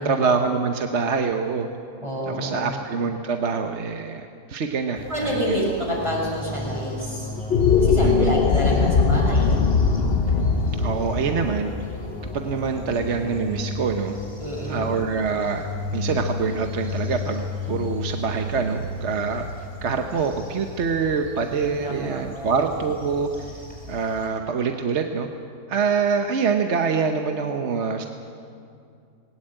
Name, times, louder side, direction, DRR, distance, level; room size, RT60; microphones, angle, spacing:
voice 1, 0.0-1.7 2.3-5.7 8.0-8.4 10.8-11.7 12.3-14.1 14.7-15.6 15.9-19.5 19.8-23.3 23.9-25.3 25.7-28.1, right 5 dB, 50° right, 5 dB, 1.1 m, -25 dB
voice 2, 2.0-2.7 5.1-7.3 7.8-9.6 14.4-14.9 21.7-22.6, equal, 20° right, -5 dB, 6.7 m, -28 dB
sound 1, 5.0-24.3, left 2 dB, 5° left, 5.9 m, -34 dB
sound 2, 7.4-13.8, left 5 dB, 45° left, 0.9 m, -21 dB
20.0 x 18.0 x 8.9 m, 2.4 s
omnidirectional pair, 1.8 m